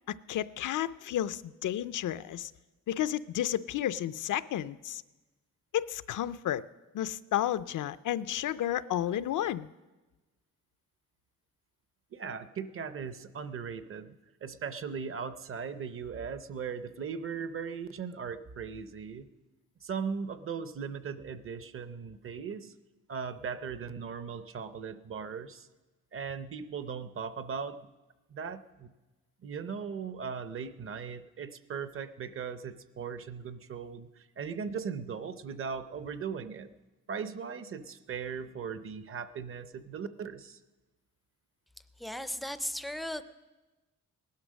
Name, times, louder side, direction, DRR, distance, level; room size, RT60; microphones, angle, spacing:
voice 1, 0.1-2.5 2.9-5.0 5.7-6.6 6.9-9.7, left 11 dB, 75° left, 15 dB, 0.5 m, -32 dB
voice 2, 12.1-19.3 19.8-22.7 23.1-25.7 26.1-27.9 28.3-28.9 29.4-36.7 37.1-40.6, right 6 dB, 45° right, 12 dB, 0.6 m, -38 dB
voice 3, 42.0-43.2, left 1 dB, ahead, 12 dB, 0.4 m, -36 dB
18.5 x 11.5 x 6.3 m, 1.2 s
wide cardioid pair, 175°, 32 cm